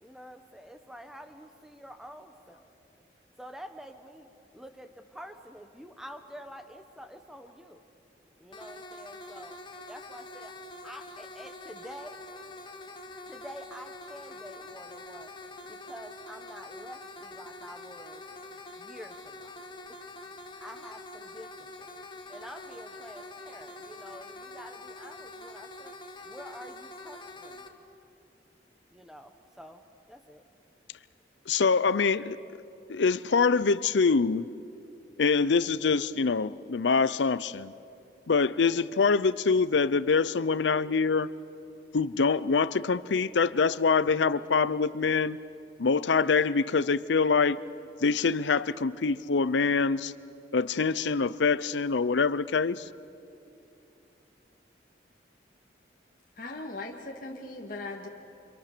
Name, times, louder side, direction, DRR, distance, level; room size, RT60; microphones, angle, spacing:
voice 1, 0.0-2.6 3.4-4.3 4.5-7.8 8.4-9.5 9.9-10.5 10.8-12.2 13.3-15.3 15.6-18.2 18.8-19.5 20.6-21.5 22.3-25.9 26.2-27.8 28.9-29.8 30.1-30.4, equal, ahead, 7 dB, 1.3 m, -47 dB
sound 1, 8.5-27.7, left 2 dB, 25° left, 1.4 m, -45 dB
voice 2, 31.5-32.4 32.9-34.5 35.2-37.7 38.3-41.3 41.9-45.4 45.8-47.6 48.0-50.1 50.5-52.9, left 4 dB, 80° left, 16 dB, 0.6 m, -25 dB
voice 3, 56.4-58.1, left 2 dB, 45° left, -1 dB, 1.9 m, -39 dB
29.0 x 26.5 x 6.8 m, 2.7 s
head